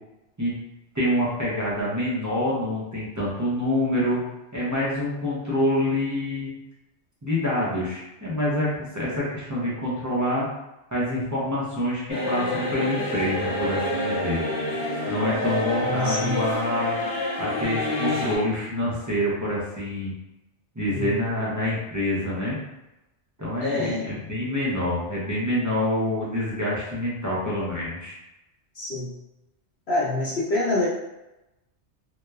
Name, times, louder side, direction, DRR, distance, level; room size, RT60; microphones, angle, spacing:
voice 1, 0.9-4.2 4.5-6.5 7.2-10.5 10.9-14.4 15.1-17.0 17.4-20.1 20.8-22.6 23.4-28.1, left 1 dB, 25° right, -8 dB, 0.4 m, -26 dB
sound 1, 12.1-18.4, left 2 dB, 90° left, 1.2 m, -28 dB
voice 2, 15.7-16.4 20.9-21.3 23.6-24.0 28.7-29.1 29.9-30.9, left 2 dB, 65° left, -7 dB, 0.9 m, -26 dB
2.9 x 2.0 x 2.3 m, 0.95 s
omnidirectional pair, 1.2 m